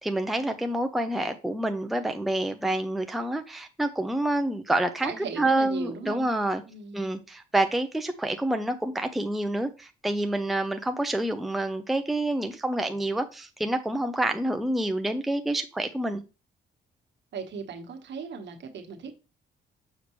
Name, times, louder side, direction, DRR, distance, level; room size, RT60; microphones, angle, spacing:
voice 1, 0.0-5.1 5.4-6.6 6.9-16.2, right 1 dB, ahead, 0.6 m, -28 dB
voice 2, 5.0-6.3 6.7-7.1 17.3-19.1, right 5 dB, 65° right, 1.4 m, -37 dB
6.6 x 5.0 x 3.1 m
cardioid pair, 90°, 20 cm